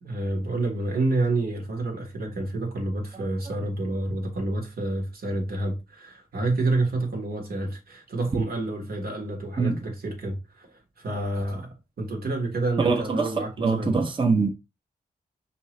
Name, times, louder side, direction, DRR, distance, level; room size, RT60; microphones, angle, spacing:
voice 1, 0.0-10.7 11.0-14.0, right 2 dB, 80° right, 1.4 m, -29 dB
voice 2, 12.8-14.5, right 4 dB, 35° right, 0.8 m, -24 dB
5.3 x 2.8 x 3.1 m
cardioid pair, 80°, 16 cm